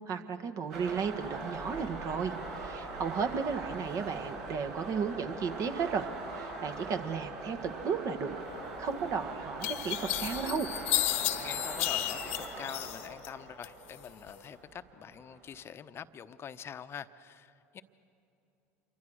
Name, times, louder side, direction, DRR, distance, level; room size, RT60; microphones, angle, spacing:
voice 1, 0.1-2.3 2.6-6.1 6.4-8.3 8.8-10.7, right 6 dB, 50° right, 8 dB, 1.8 m, -34 dB
sound 1, 0.7-15.6, right 3 dB, 70° right, 6.4 m, -42 dB
sound 2, 8.9-9.0 9.6-13.3 13.6-14.4, left 16 dB, 75° left, 1.2 m, -33 dB
voice 2, 11.1-17.8, left 8 dB, 35° left, 11 dB, 1.0 m, -45 dB
27.5 x 24.0 x 6.4 m, 2.7 s
hypercardioid pair, 80°, 7 cm